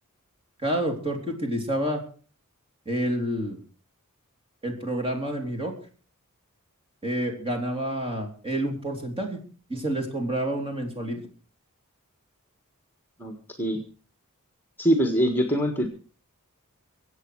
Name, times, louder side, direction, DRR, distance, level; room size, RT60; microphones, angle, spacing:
voice 1, 0.6-2.0 2.9-3.6 4.6-5.7 7.0-9.4 9.7-11.2, right 1 dB, 25° right, 3 dB, 3.5 m, -28 dB
voice 2, 13.2-13.8 14.8-15.9, equal, 10° left, 5 dB, 1.7 m, -24 dB
24.0 x 8.4 x 4.8 m, 0.39 s
head